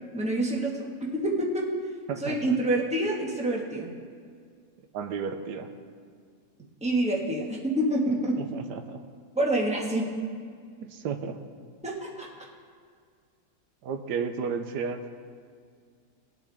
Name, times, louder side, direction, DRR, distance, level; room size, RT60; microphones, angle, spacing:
voice 1, 0.1-1.7 2.2-3.9 6.8-8.4 9.3-10.1 11.8-12.4, right 1 dB, 5° right, -3 dB, 1.4 m, -27 dB
voice 2, 2.1-2.5 4.9-5.7 8.4-9.0 10.8-11.4 13.8-15.2, right 6 dB, 85° right, 7 dB, 1.3 m, -33 dB
19.5 x 8.4 x 3.5 m, 2.1 s
omnidirectional pair, 1.8 m